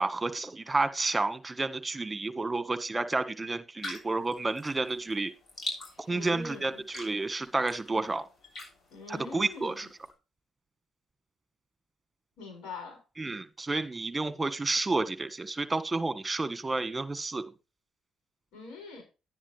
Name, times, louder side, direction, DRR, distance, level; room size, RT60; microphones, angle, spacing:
voice 1, 0.0-5.3 6.1-8.2 9.1-9.8 13.2-17.4, right 3 dB, 20° right, 1.6 m, -30 dB
sound 1, 3.8-10.1, left 2 dB, 50° left, 7.5 m, -44 dB
voice 2, 6.1-6.8 8.9-9.9 12.4-13.0 18.5-19.0, left 4 dB, 90° left, 7.4 m, -43 dB
11.0 x 10.0 x 3.4 m
cardioid pair, 90°, 0 cm